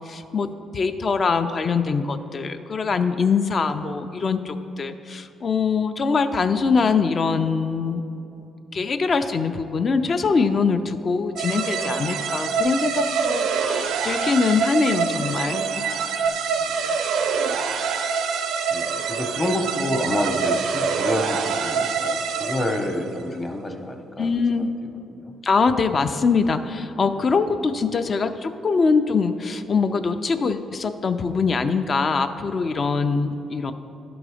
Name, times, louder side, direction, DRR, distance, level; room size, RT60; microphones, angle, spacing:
voice 1, 0.1-8.0 8.7-15.9 24.2-24.7 25.4-33.7, left 4 dB, 45° left, 9 dB, 0.4 m, -23 dB
sound 1, 11.4-23.0, right 5 dB, 80° right, 0.4 m, -25 dB
voice 2, 16.6-17.0 18.7-24.3 24.6-24.7 25.1-25.3, left 1 dB, 20° left, 4 dB, 0.8 m, -28 dB
11.0 x 3.9 x 4.9 m, 2.9 s
cardioid pair, 90°, 0 cm